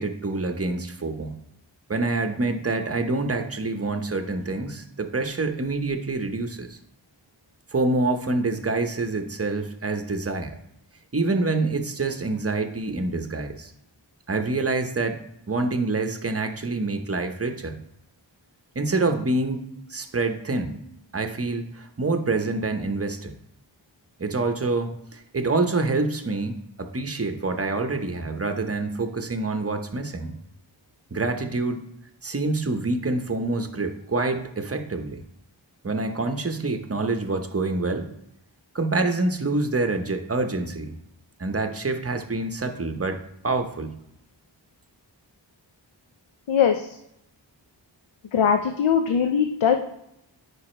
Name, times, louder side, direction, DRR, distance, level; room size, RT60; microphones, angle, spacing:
voice 1, 0.0-1.4 1.9-6.8 7.7-10.5 11.1-13.7 14.3-15.2 15.5-17.8 18.7-20.8 21.1-23.3 24.2-30.4 31.1-31.8 32.2-35.2 35.8-38.1 38.7-40.9 41.4-43.9, right 3 dB, 30° right, 6 dB, 0.8 m, -26 dB
voice 2, 46.5-47.0 48.3-49.8, left 7 dB, 80° left, 5 dB, 0.6 m, -21 dB
4.8 x 4.8 x 4.3 m, 0.80 s
wide cardioid pair, 45°, 46 cm